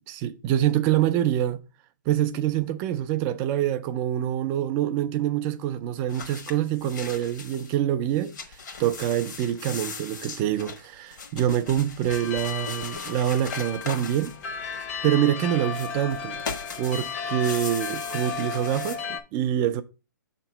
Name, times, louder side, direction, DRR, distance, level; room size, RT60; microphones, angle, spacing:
voice 1, 0.1-1.6 2.1-8.3 8.8-14.3 14.6-14.8 15.0-16.4 16.8-19.8, right 11 dB, 20° right, 0.4 m, -25 dB
sound 1, 6.1-7.8 8.1-15.1 15.7-19.0, left 5 dB, 60° left, 1.3 m, -39 dB
sound 2, 12.1-19.2, left 6 dB, 35° left, 0.8 m, -34 dB
6.7 x 3.0 x 5.5 m
hypercardioid pair, 155°, 11 cm